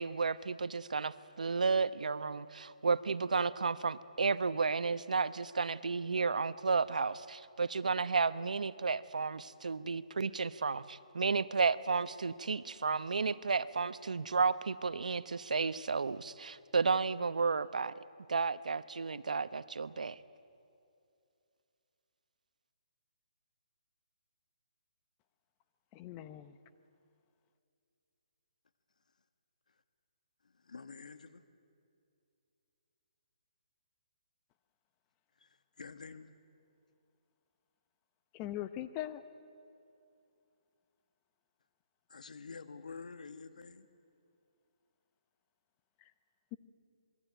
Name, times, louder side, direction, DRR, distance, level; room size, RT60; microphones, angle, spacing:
voice 1, 0.0-17.9 18.3-20.2, right 4 dB, 85° right, 15 dB, 0.9 m, -32 dB
voice 2, 25.9-26.6 38.3-39.2 46.0-46.1, left 13 dB, 20° left, 12 dB, 0.8 m, -41 dB
voice 3, 30.6-31.4 35.4-35.5 35.8-36.3 42.1-43.9, left 4 dB, 85° left, 11 dB, 1.6 m, -48 dB
27.0 x 21.0 x 9.2 m, 2.6 s
hypercardioid pair, 160°, 4 cm